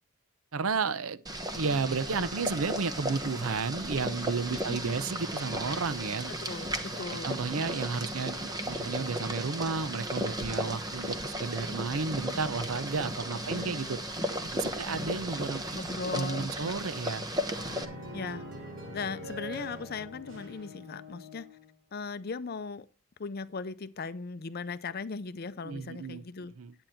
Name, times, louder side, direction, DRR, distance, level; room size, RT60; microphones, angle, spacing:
voice 1, 0.5-1.2 1.5-6.3 7.1-14.0 14.5-15.8 16.1-17.2 25.6-26.2 26.6-26.7, right 4 dB, 75° right, 0.7 m, -32 dB
Boiling, 1.3-17.9, equal, 20° right, 1.0 m, -35 dB
voice 2, 4.5-5.1 6.3-7.3 13.3-13.9 14.9-15.3 15.7-16.7 17.0-17.2 18.1-18.4 18.9-21.5 21.9-22.9 23.2-26.5, left 4 dB, 45° left, 0.5 m, -38 dB
sound 1, 17.5-21.7, equal, 60° right, 3.5 m, -43 dB
10.0 x 8.8 x 4.4 m
head